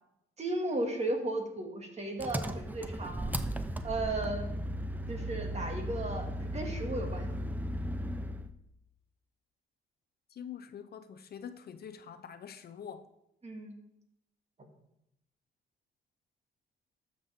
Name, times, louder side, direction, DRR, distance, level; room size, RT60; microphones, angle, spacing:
voice 1, 0.4-3.3 3.8-4.5 5.1-7.3 13.4-13.7, right 2 dB, 35° right, 2.2 m, -35 dB
Engine, 2.2-8.5, equal, 10° right, 0.7 m, -36 dB
voice 2, 10.3-13.1, left 8 dB, 50° left, 0.7 m, -45 dB
12.5 x 7.4 x 3.6 m
cardioid pair, 90°, 20 cm